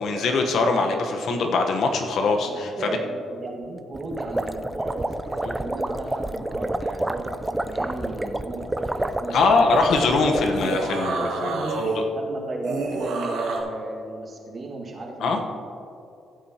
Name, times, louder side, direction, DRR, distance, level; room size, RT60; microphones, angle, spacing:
voice 1, 0.0-2.7 5.4-5.5 9.3-12.0 15.2-15.4, left 3 dB, 70° left, 4 dB, 1.1 m, -22 dB
voice 2, 2.5-10.0 10.7-11.8 12.1-15.4, right 2 dB, 40° right, -1 dB, 1.9 m, -34 dB
sound 1, 3.9-10.8, right 1 dB, 10° right, 0.5 m, -29 dB
sound 2, 10.4-12.0 12.6-13.6, right 3 dB, 90° right, 1.5 m, -28 dB
15.0 x 8.6 x 2.9 m, 2.6 s
cardioid pair, 90°, 0 cm